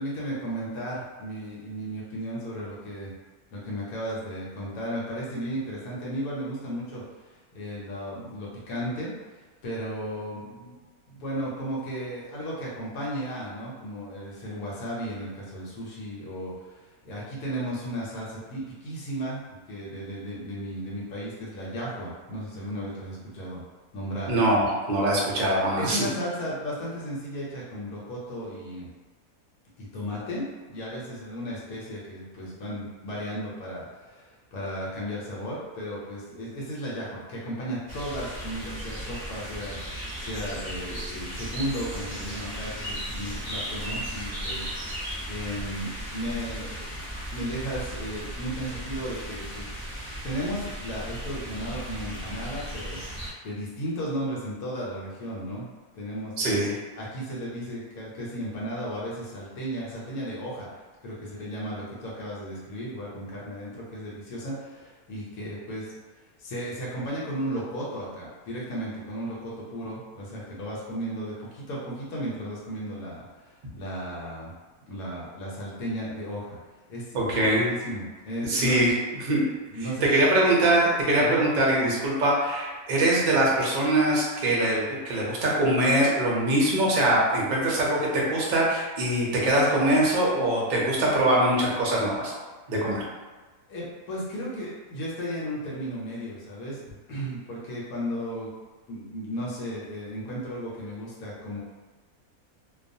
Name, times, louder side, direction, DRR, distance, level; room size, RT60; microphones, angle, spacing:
voice 1, 0.0-3.1 3.5-9.1 9.6-10.8 11.1-19.4 19.7-23.6 23.9-24.3 25.8-28.9 29.8-47.0 47.3-49.7 50.2-55.7 55.9-56.7 57.0-65.9 66.4-74.5 74.9-76.6 76.9-78.8 79.7-80.2 81.2-81.4 93.7-96.8 97.1-98.5 98.9-101.6, equal, 85° left, -6 dB, 1.2 m, -35 dB
voice 2, 24.3-26.1 56.4-56.7 77.1-77.7 78.5-78.9 79.2-79.4 80.0-92.3 92.7-93.0, right 1 dB, 50° right, -4 dB, 0.6 m, -23 dB
sound 1, 37.9-53.3, equal, 5° left, 0.8 m, -36 dB
2.5 x 2.3 x 2.6 m, 1.3 s
omnidirectional pair, 1.5 m